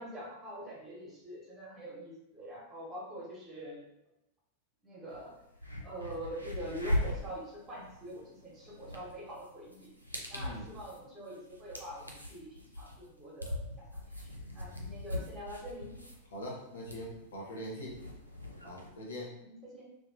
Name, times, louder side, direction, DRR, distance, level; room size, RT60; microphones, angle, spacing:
voice 1, 0.0-3.8 4.8-5.4 5.8-9.9 10.3-16.0 19.3-19.8, right 1 dB, 15° right, -5 dB, 1.1 m, -45 dB
sound 1, 5.1-5.2 5.5-18.9, left 1 dB, 90° right, 0.4 m, -40 dB
voice 2, 10.3-10.7 16.3-18.0 18.6-19.3, equal, 65° left, -4 dB, 0.7 m, -42 dB
2.8 x 2.3 x 2.5 m, 0.86 s
figure-of-eight pair, 90°, 0 cm